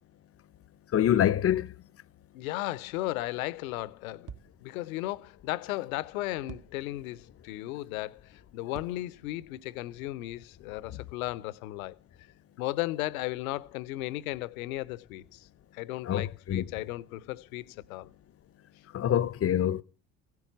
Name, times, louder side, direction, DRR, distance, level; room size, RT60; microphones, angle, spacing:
voice 1, 0.9-1.7 16.1-16.6 18.9-19.8, left 11 dB, 35° left, 0.7 m, -25 dB
voice 2, 2.3-4.3 4.6-11.9 12.6-15.5 15.7-18.1, left 17 dB, 70° left, 0.7 m, -35 dB
sound 1, 4.2-4.9 6.4-7.3 8.7-9.6, right 7 dB, 45° right, 1.2 m, -48 dB
16.0 x 9.4 x 7.3 m
figure-of-eight pair, 55°, 43 cm